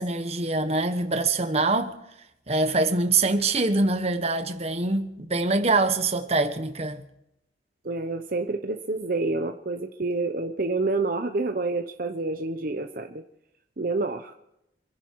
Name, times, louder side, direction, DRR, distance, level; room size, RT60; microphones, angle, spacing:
voice 1, 0.0-1.9 2.5-7.0, right 3 dB, 35° right, 1.4 m, -24 dB
voice 2, 7.8-13.2 13.8-14.3, right 3 dB, 50° right, 0.9 m, -28 dB
27.5 x 10.5 x 4.7 m
head